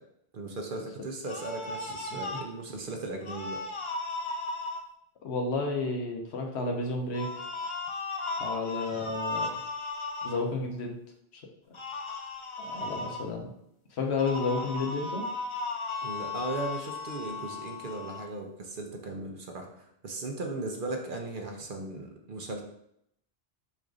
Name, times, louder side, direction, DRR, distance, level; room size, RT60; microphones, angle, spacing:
voice 1, 0.3-3.6 8.9-9.1 16.0-22.6, right 2 dB, 55° right, 2 dB, 0.8 m, -37 dB
sound 1, 1.2-2.5 3.2-4.8 7.1-10.4 11.7-13.2 14.2-18.3, left 3 dB, 45° left, 0.4 m, -36 dB
voice 2, 5.2-7.5 8.4-9.5 10.2-11.0 12.6-13.5 13.9-15.2, left 3 dB, 75° left, 2 dB, 1.1 m, -31 dB
4.2 x 2.5 x 4.8 m, 0.76 s
omnidirectional pair, 1.1 m